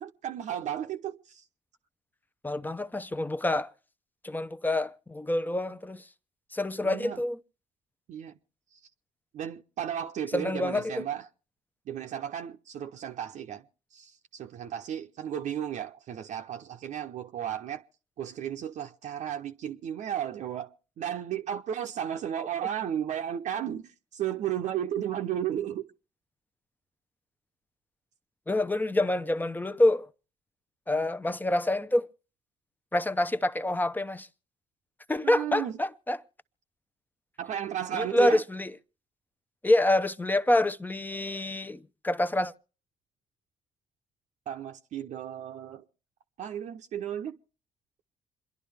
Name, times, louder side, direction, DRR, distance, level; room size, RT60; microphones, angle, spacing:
voice 1, 0.0-1.4 6.8-7.2 8.1-8.3 8.7-8.8 9.3-11.2 11.9-13.6 13.9-17.8 18.2-25.8 35.2-35.8 37.4-38.4 44.5-45.8 46.4-47.4, right 10 dB, 60° right, 0.7 m, -34 dB
voice 2, 2.4-3.7 4.2-6.0 6.5-7.4 10.3-11.1 28.5-30.1 30.9-32.1 32.9-34.3 35.1-36.2 37.9-38.7 39.6-42.5, left 1 dB, 15° left, 0.7 m, -27 dB
27.5 x 11.0 x 3.4 m
hypercardioid pair, 50°, 14 cm